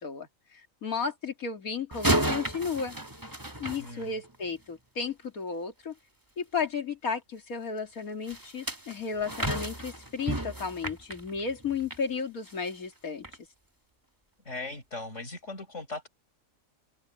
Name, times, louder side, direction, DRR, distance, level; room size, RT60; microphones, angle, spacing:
voice 1, 0.0-3.0 3.6-5.9 6.4-13.3, left 5 dB, 85° left, 2.8 m, -34 dB
sound 1, 1.9-4.5 8.3-12.1 12.5-12.7 13.2-13.4, right 1 dB, 15° right, 2.2 m, -32 dB
voice 2, 3.7-4.2 14.4-16.1, left 3 dB, 55° left, 6.7 m, -39 dB
omnidirectional pair, 1.5 m